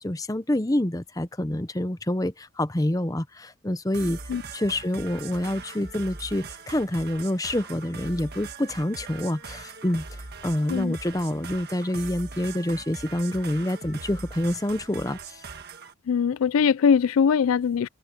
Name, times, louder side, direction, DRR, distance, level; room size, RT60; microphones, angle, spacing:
voice 1, 0.0-4.2 4.5-10.1 10.4-15.4, left 1 dB, 15° left, 0.8 m, -27 dB
sound 1, 3.9-15.9, right 4 dB, 50° right, 1.6 m, -41 dB
voice 2, 16.1-17.9, left 6 dB, 90° left, 0.4 m, -21 dB
head